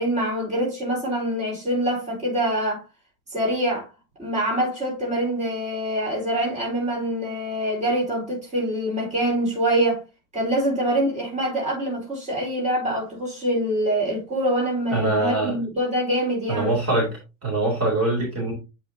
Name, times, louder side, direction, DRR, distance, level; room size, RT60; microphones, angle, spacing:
voice 1, 0.0-2.8 3.3-3.9 4.2-10.0 10.3-16.7, right 1 dB, 15° right, 4.3 m, -25 dB
voice 2, 14.9-15.6 16.5-17.1 17.4-18.5, right 2 dB, 35° right, 3.7 m, -23 dB
8.5 x 5.7 x 2.8 m
cardioid pair, 140°, 44 cm